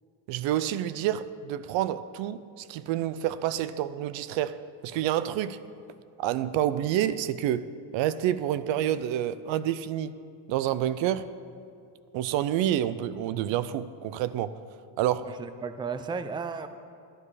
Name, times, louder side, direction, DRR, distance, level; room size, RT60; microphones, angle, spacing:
voice 1, 0.3-5.6 6.2-10.2 10.5-11.3 12.1-14.6 15.0-15.4, right 11 dB, 70° right, 0.6 m, -28 dB
voice 2, 15.2-16.7, right 5 dB, 10° right, 0.4 m, -34 dB
12.5 x 9.8 x 4.9 m
cardioid pair, 105°, 46 cm